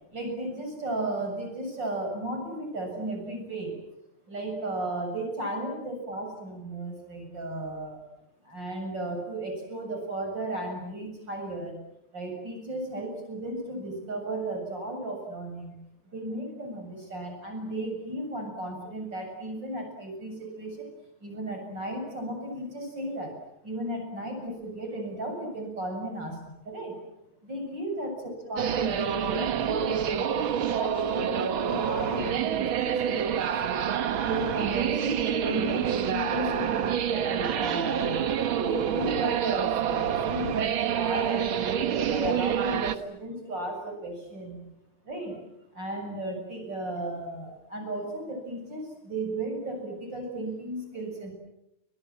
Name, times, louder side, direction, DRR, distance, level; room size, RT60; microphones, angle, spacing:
voice 1, 0.1-3.8 4.3-8.0 8.4-11.7 12.1-15.7 16.1-20.9 21.2-23.4 23.6-27.0 27.4-33.5 34.2-38.2 38.6-44.6 45.0-45.4 45.7-51.3, right 1 dB, 55° right, 3 dB, 7.9 m, -34 dB
sound 1, 28.6-43.0, right 9 dB, 70° right, 2.1 m, -27 dB
29.0 x 26.0 x 7.7 m, 0.83 s
omnidirectional pair, 2.4 m